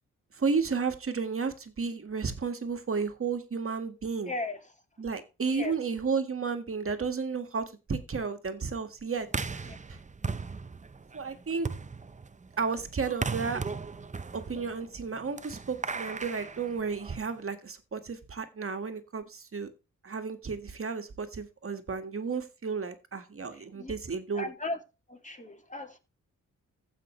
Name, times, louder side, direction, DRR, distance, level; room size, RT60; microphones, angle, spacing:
voice 1, 0.3-4.3 5.0-9.3 9.5-9.6 9.9-10.0 11.1-11.7 12.6-13.6 14.3-19.7 20.0-24.5, right 5 dB, 45° right, 1.8 m, -32 dB
voice 2, 4.2-4.8 5.5-5.8 9.6-9.8 23.5-23.9 24.3-24.8 25.1-26.0, left 2 dB, 25° left, 2.7 m, -37 dB
sound 1, 9.2-17.4, right 4 dB, 25° right, 0.7 m, -37 dB
15.0 x 5.9 x 3.2 m
cardioid pair, 55°, 32 cm